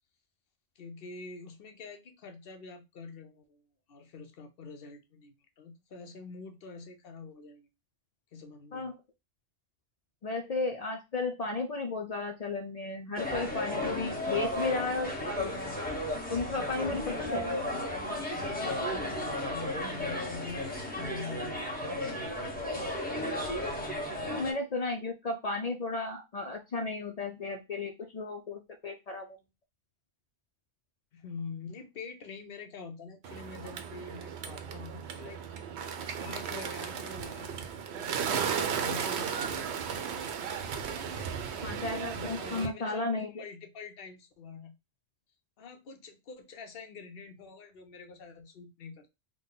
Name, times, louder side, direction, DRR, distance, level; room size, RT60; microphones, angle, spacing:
voice 1, 0.8-3.6 3.9-7.7 8.3-8.9 17.6-18.2 19.5-22.4 31.1-35.4 36.2-40.3 41.6-44.8 45.6-49.1, left 4 dB, 55° left, 0.9 m, -46 dB
voice 2, 10.2-15.8 16.3-17.5 24.3-29.3 41.6-43.4, left 3 dB, 75° left, 0.3 m, -34 dB
sound 1, 13.2-24.5, left 1 dB, 10° left, 0.9 m, -34 dB
Bird, 33.2-42.7, right 7 dB, 65° right, 0.8 m, -35 dB
3.7 x 2.2 x 3.9 m
omnidirectional pair, 1.3 m